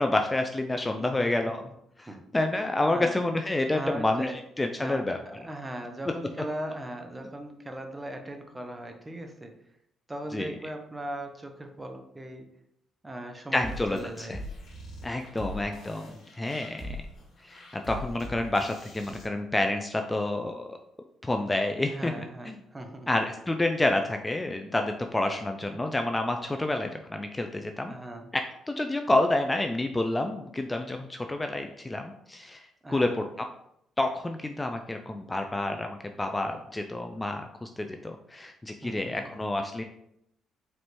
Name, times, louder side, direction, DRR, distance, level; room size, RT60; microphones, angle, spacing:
voice 1, 0.0-1.6 2.0-2.1 2.3-4.3 4.6-5.2 10.3-10.5 13.5-14.4 15.0-17.0 17.4-20.8 21.2-22.1 22.4-22.6 23.1-27.9 28.3-33.2 34.0-39.8, left 2 dB, 15° left, 4 dB, 0.3 m, -29 dB
voice 2, 1.0-1.5 2.1-2.2 2.9-3.2 3.7-4.4 4.8-9.5 10.1-12.5 13.0-14.4 21.8-23.1 27.9-28.3 32.8-33.2 38.8-39.3, right 1 dB, 15° right, 5 dB, 0.6 m, -39 dB
sound 1, 13.6-19.2, left 1 dB, 65° left, 1.6 m, -41 dB
4.4 x 3.1 x 2.9 m, 0.76 s
cardioid pair, 90°, 0 cm